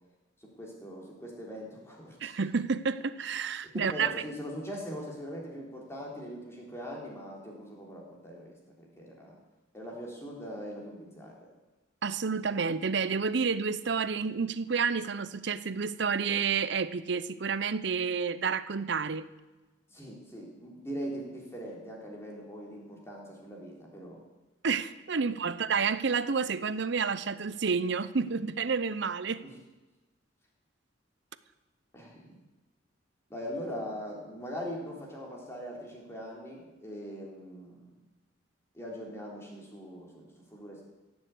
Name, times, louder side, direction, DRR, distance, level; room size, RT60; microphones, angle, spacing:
voice 1, 0.4-2.3 3.7-9.4 9.7-11.4 19.9-24.2 29.4-29.5 31.9-32.4 33.3-37.9 38.7-40.9, equal, 15° left, -2 dB, 3.4 m, -41 dB
voice 2, 2.2-4.1 12.0-19.2 24.6-29.4, right 5 dB, 65° right, 15 dB, 0.7 m, -30 dB
16.5 x 7.2 x 8.3 m, 1.2 s
head